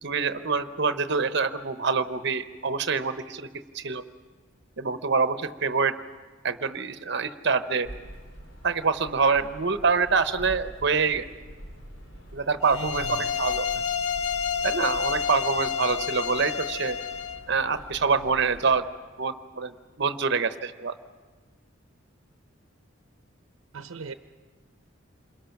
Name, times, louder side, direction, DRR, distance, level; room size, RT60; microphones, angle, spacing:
voice 1, 0.0-3.5 3.7-4.0 4.8-5.9 6.4-7.9 8.6-11.3 12.3-13.0 13.4-13.6 14.6-17.0 17.5-18.9 19.2-20.9, right 5 dB, 60° right, 11 dB, 0.9 m, -25 dB
sound 1, 7.8-18.8, equal, 70° left, 3.6 m, -45 dB
sound 2, 12.6-17.4, left 7 dB, 90° left, 0.9 m, -29 dB
voice 2, 12.7-13.4 13.7-13.9 23.7-24.1, right 4 dB, 85° right, 9 dB, 0.7 m, -39 dB
28.0 x 21.5 x 5.9 m, 1.4 s
head